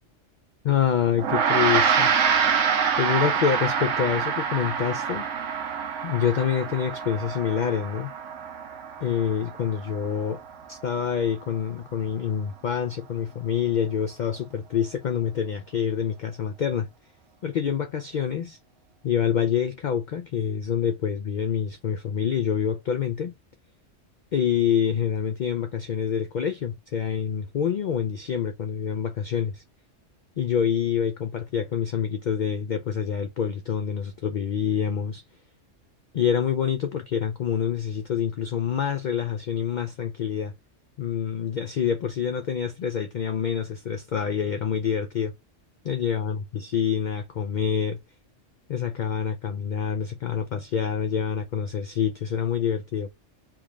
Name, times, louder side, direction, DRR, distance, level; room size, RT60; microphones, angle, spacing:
voice 1, 0.6-2.1 3.0-5.2 6.0-8.1 9.0-10.4 10.7-16.9 17.4-18.6 19.0-23.3 24.3-29.6 30.4-35.2 36.1-40.5 41.0-45.3 45.8-48.0 48.7-53.1, left 8 dB, 60° left, 0.5 m, -26 dB
Gong, 1.2-10.7, right 7 dB, 85° right, 1.0 m, -26 dB
3.5 x 3.1 x 2.3 m
omnidirectional pair, 1.2 m